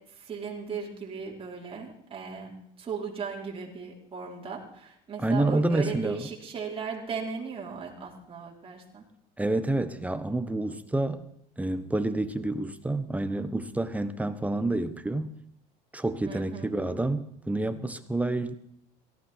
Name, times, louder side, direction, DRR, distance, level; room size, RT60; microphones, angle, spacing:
voice 1, 0.2-9.0 16.2-16.7, right 5 dB, 30° right, -2 dB, 4.9 m, -37 dB
voice 2, 5.2-6.2 9.4-11.2 11.6-15.3 15.9-18.6, right 2 dB, 10° right, 10 dB, 1.3 m, -28 dB
17.5 x 15.0 x 4.7 m, 0.71 s
supercardioid pair, 105°, 18 cm